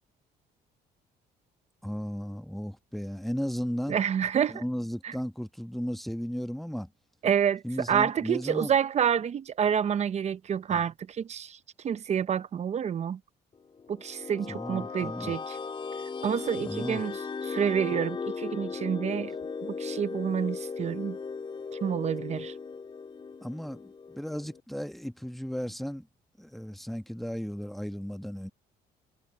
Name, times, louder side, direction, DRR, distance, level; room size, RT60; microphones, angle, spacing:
voice 1, 1.8-4.0 4.5-6.9 7.6-8.7 10.7-10.8 14.5-15.4 16.6-17.0 23.4-26.1 26.4-28.5, equal, ahead, 1.4 m, -35 dB
voice 2, 3.9-4.6 5.0-5.1 7.2-7.6 7.9-11.6 11.8-13.2 13.9-15.6 16.2-17.2 17.5-19.3 19.6-21.2 21.8-22.5, right 8 dB, 40° right, 0.8 m, -28 dB
sound 1, 13.8-24.6, left 5 dB, 30° left, 4.1 m, -37 dB
cardioid pair, 110°, 17 cm